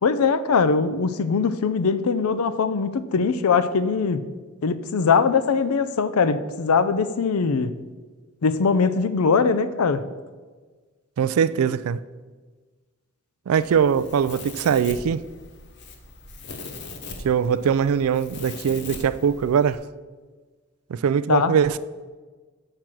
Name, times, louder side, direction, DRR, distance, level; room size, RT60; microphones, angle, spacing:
voice 1, 0.0-4.2 4.6-7.7 8.4-10.0 21.3-21.5, left 5 dB, 80° left, 0.5 m, -21 dB
voice 2, 11.2-12.0 13.5-15.2 17.2-19.8 20.9-21.8, right 7 dB, 75° right, 0.3 m, -21 dB
Domestic sounds home sounds, 13.5-19.7, left 3 dB, 55° left, 0.9 m, -40 dB
6.6 x 5.8 x 6.1 m
head